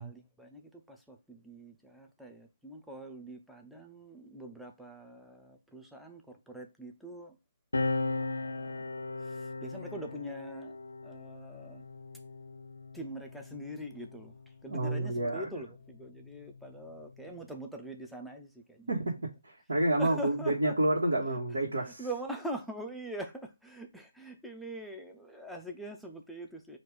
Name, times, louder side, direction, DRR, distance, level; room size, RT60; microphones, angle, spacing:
voice 1, 0.0-7.4 8.2-8.9 9.2-10.7 11.0-11.8 12.9-14.3 14.6-18.9 20.0-20.7 21.3-21.4 21.8-26.8, right 1 dB, ahead, 0.5 m, -43 dB
sound 1, 7.7-14.6 15.6-17.5, left 3 dB, 90° left, 0.6 m, -38 dB
voice 2, 14.7-15.6 18.9-19.1 19.4-22.1, right 1 dB, 75° right, 1.4 m, -29 dB
4.3 x 2.4 x 4.8 m
hypercardioid pair, 160°, 0 cm